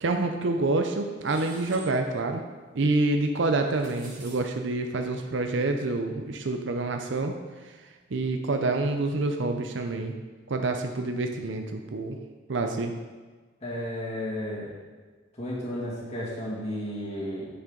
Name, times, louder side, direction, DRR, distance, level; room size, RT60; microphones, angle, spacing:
voice 1, 0.0-2.4 2.7-7.4 8.1-10.1 10.5-12.2 12.5-12.9, right 2 dB, 65° right, 5 dB, 0.6 m, -27 dB
sound 1, 1.2-1.9 3.4-4.4, right 3 dB, 45° right, 2.2 m, -48 dB
voice 2, 13.6-14.7 15.4-17.5, left 1 dB, 35° left, -6 dB, 2.1 m, -33 dB
10.5 x 6.4 x 3.8 m, 1.4 s
head